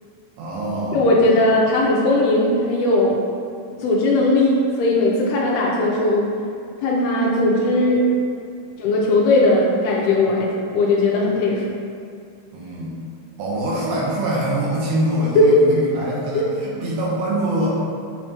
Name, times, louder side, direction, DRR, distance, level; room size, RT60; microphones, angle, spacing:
voice 1, 0.4-1.0 12.5-13.0 13.4-17.8, right 1 dB, 80° right, -5 dB, 3.0 m, -24 dB
voice 2, 0.9-3.2 3.8-6.3 6.8-8.1 8.8-11.6 15.4-15.6 16.3-16.4, left 2 dB, 85° left, -3 dB, 2.6 m, -18 dB
8.3 x 4.5 x 2.9 m, 2.4 s
omnidirectional pair, 4.6 m